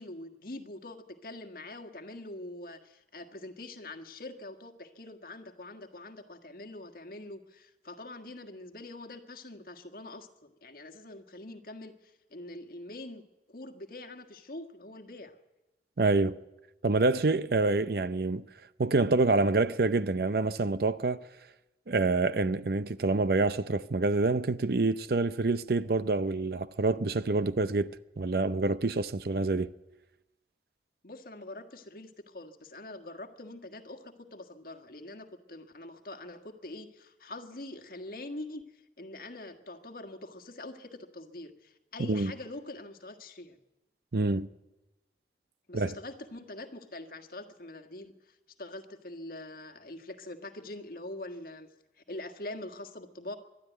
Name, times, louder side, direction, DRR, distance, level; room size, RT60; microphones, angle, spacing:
voice 1, 0.0-13.2 13.5-15.4 31.0-43.6 45.7-51.7 52.1-53.4, left 2 dB, 55° left, 1.6 m, -44 dB
voice 2, 16.0-16.4 16.8-18.4 18.8-21.2 21.9-27.9 28.2-29.7 42.1-42.3 44.1-44.5 45.7-46.0, right 3 dB, 60° right, 0.6 m, -27 dB
22.5 x 12.5 x 9.2 m
head